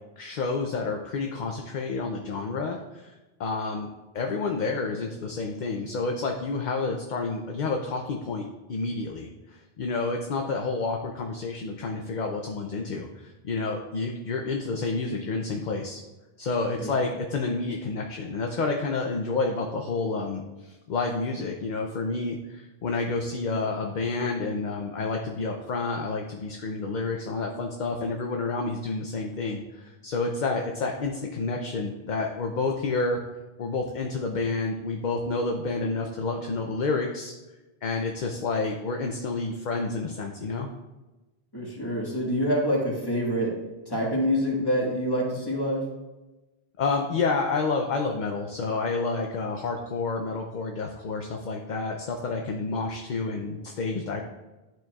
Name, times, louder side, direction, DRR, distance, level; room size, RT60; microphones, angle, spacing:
voice 1, 0.2-3.9 4.1-16.0 16.4-33.2 33.6-37.3 37.8-40.7 46.8-54.2, left 3 dB, 55° left, 2 dB, 0.7 m, -29 dB
voice 2, 41.5-43.5 43.9-45.8, equal, 25° left, -3 dB, 1.6 m, -26 dB
11.5 x 4.5 x 2.3 m, 1.1 s
omnidirectional pair, 1.0 m